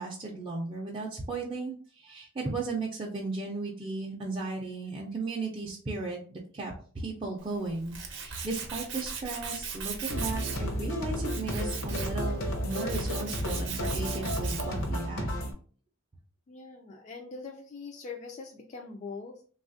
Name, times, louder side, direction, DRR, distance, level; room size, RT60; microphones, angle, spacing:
voice 1, 0.0-15.4, right 3 dB, 25° right, -3 dB, 0.4 m, -36 dB
Tools, 7.4-14.9, right 6 dB, 60° right, 0.6 m, -39 dB
sound 1, 10.1-15.5, equal, 65° left, 0.7 m, -32 dB
voice 2, 16.5-19.4, left 4 dB, 35° left, 1 dB, 0.3 m, -42 dB
3.3 x 2.3 x 2.5 m, 0.43 s
head